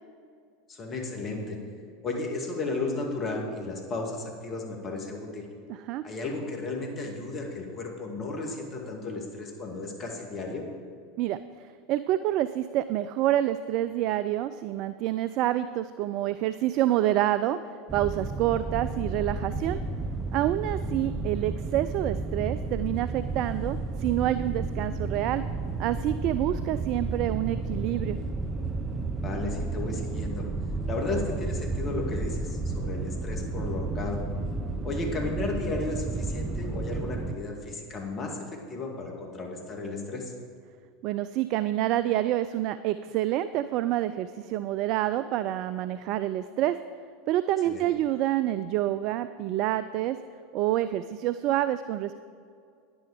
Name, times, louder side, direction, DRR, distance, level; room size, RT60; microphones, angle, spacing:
voice 1, 0.7-1.6 2.0-5.5 6.0-10.6 29.2-30.5 30.9-34.2 34.8-40.3 47.7-47.9, left 3 dB, 35° left, 1 dB, 2.3 m, -34 dB
voice 2, 5.7-6.0 11.2-17.6 17.9-19.8 20.3-25.4 25.8-28.2 41.0-46.8 47.3-50.2 50.5-52.1, right 13 dB, 50° right, 13 dB, 0.3 m, -27 dB
sound 1, 17.9-37.4, right 3 dB, 20° right, 0.8 m, -32 dB
10.5 x 9.9 x 5.0 m, 2.3 s
figure-of-eight pair, 80°, 0 cm